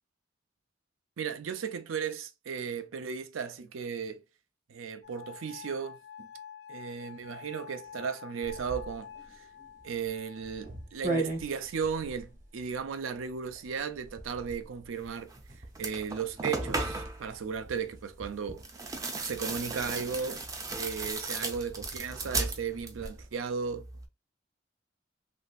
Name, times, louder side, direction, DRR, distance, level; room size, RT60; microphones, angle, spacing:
voice 1, 1.2-4.2 4.7-6.3 6.7-9.4 9.8-15.3 15.8-18.6 19.2-20.4 20.8-23.9, right 6 dB, 90° right, 0.5 m, -35 dB
sound 1, 5.0-12.0 12.8-13.4, left 8 dB, 60° left, 0.4 m, -49 dB
sound 2, 8.4-23.3, right 2 dB, 40° right, 0.9 m, -42 dB
sound 3, 15.3-15.4 15.7-17.2 18.6-23.2 23.5-24.1, right 3 dB, 15° right, 0.4 m, -36 dB
3.0 x 2.6 x 2.4 m
head